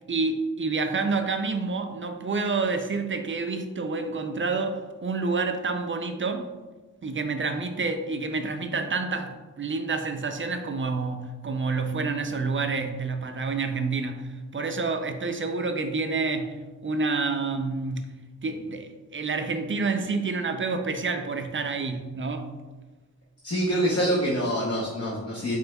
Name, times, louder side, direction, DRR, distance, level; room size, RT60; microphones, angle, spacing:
voice 1, 0.0-6.5 7.0-18.1 18.4-22.5, right 4 dB, 45° right, 0.4 m, -28 dB
voice 2, 23.4-25.6, equal, 55° left, 0.8 m, -25 dB
5.1 x 3.1 x 2.2 m
cardioid pair, 45°, 29 cm